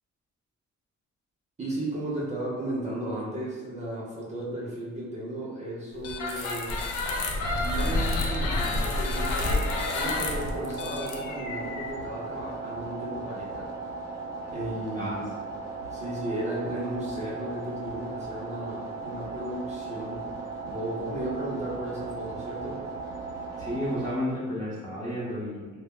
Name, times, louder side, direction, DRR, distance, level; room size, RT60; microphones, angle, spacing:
voice 1, 1.6-6.7 7.5-13.7 14.5-15.3 15.9-20.3 20.6-22.8, right 1 dB, 25° right, -6 dB, 0.6 m, -35 dB
sound 1, 6.0-11.9, left 2 dB, 80° left, 0.5 m, -29 dB
sound 2, 9.2-24.2, right 3 dB, 60° right, 0.7 m, -37 dB
voice 2, 23.6-25.7, left 1 dB, 10° left, -10 dB, 0.7 m, -32 dB
2.1 x 2.1 x 3.6 m, 1.4 s
cardioid pair, 90°, 30 cm